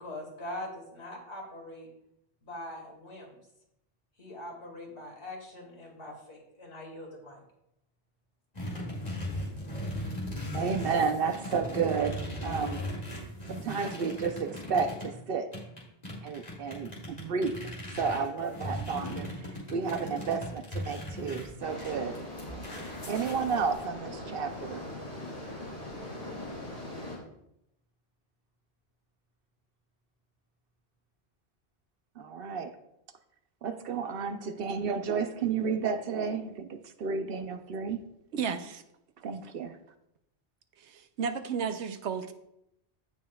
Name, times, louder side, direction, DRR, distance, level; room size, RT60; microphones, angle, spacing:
voice 1, 0.0-1.9 2.4-3.4 4.2-7.4, left 1 dB, 85° left, 2.5 m, -42 dB
sound 1, 8.5-15.1 15.5-23.8, equal, 35° left, 2.5 m, -38 dB
voice 2, 10.5-12.9 13.5-15.6 16.2-22.2 23.1-24.9 32.2-32.7 33.6-38.1 39.2-39.8, right 5 dB, 65° right, 0.8 m, -32 dB
sound 2, 21.6-27.2, left 1 dB, 60° left, 3.3 m, -41 dB
voice 3, 38.3-38.8 40.8-42.3, right 6 dB, 90° right, 1.0 m, -33 dB
15.5 x 5.3 x 2.3 m
omnidirectional pair, 1.1 m